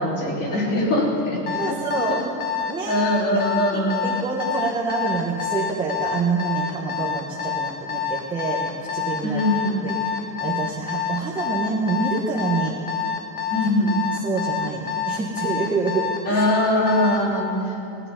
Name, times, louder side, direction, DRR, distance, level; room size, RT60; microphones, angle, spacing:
voice 1, 0.0-1.8 2.8-4.0 9.2-9.8 13.5-14.0 16.2-17.7, left 1 dB, 40° left, -5 dB, 3.4 m, -22 dB
Alarm, 1.5-17.3, left 7 dB, 20° left, 0.9 m, -27 dB
voice 2, 1.5-2.3 2.7-3.0 3.7-9.4 9.8-12.7 14.2-16.4, right 4 dB, 10° right, -2 dB, 0.6 m, -27 dB
17.5 x 9.9 x 5.5 m, 2.8 s
cardioid pair, 170°, 48 cm